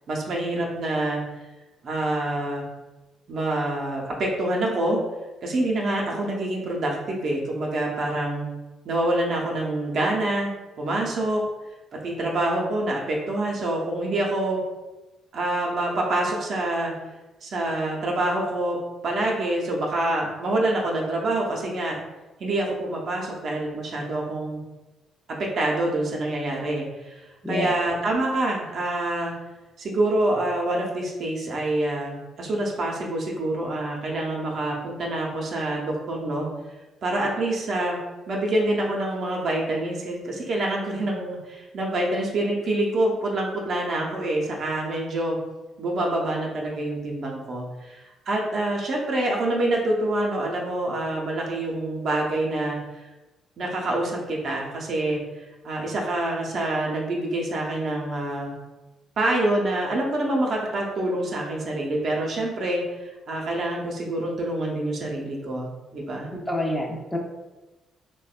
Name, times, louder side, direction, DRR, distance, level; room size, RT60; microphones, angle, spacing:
voice 1, 0.1-1.2 1.8-2.6 3.3-5.0 5.4-8.4 8.8-10.5 10.8-11.4 11.9-14.6 15.3-16.9 17.4-18.8 19.0-22.0 22.4-24.6 25.4-27.2 27.5-29.3 29.8-36.5 37.0-38.0 38.3-45.4 45.8-52.8 53.6-55.2 55.6-58.5 59.2-66.3, right 1 dB, 60° right, -1 dB, 0.6 m, -26 dB
voice 2, 66.5-67.2, left 1 dB, 10° left, 0 dB, 0.6 m, -27 dB
3.3 x 2.1 x 2.4 m, 1.1 s
hypercardioid pair, 55°, 0 cm